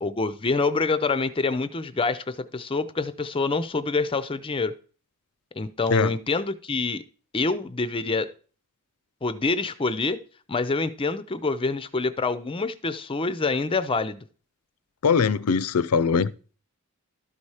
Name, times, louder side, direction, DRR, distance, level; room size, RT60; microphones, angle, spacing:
voice 1, 0.0-4.7 5.6-7.0 7.3-8.3 9.2-10.2 10.5-14.2, left 3 dB, 25° left, 0.5 m, -26 dB
voice 2, 15.0-16.3, left 5 dB, 80° left, 0.5 m, -21 dB
12.5 x 4.2 x 4.8 m
head